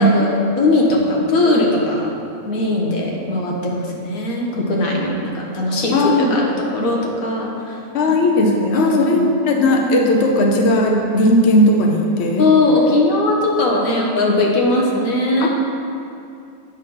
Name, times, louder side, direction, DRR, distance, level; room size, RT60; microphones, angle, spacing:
voice 1, 0.0-2.1 2.5-7.8 8.1-8.2 8.7-9.3 12.4-15.5, left 2 dB, 90° left, -2 dB, 1.6 m, -19 dB
voice 2, 5.9-6.3 7.9-12.5 15.4-15.5, left 1 dB, 55° left, 1 dB, 1.0 m, -16 dB
8.3 x 5.1 x 5.6 m, 2.5 s
omnidirectional pair, 1.4 m